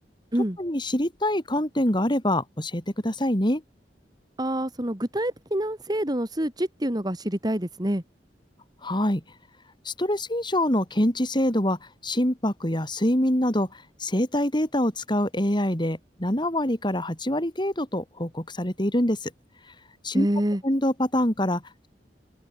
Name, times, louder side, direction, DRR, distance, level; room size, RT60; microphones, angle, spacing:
voice 1, 0.6-3.6 8.8-9.2 9.8-13.7 14.0-19.3 20.0-20.3 20.6-21.9, left 1 dB, 25° left, 4.6 m, -25 dB
voice 2, 4.4-8.0 20.1-20.6, right 1 dB, 25° right, 2.5 m, -26 dB
head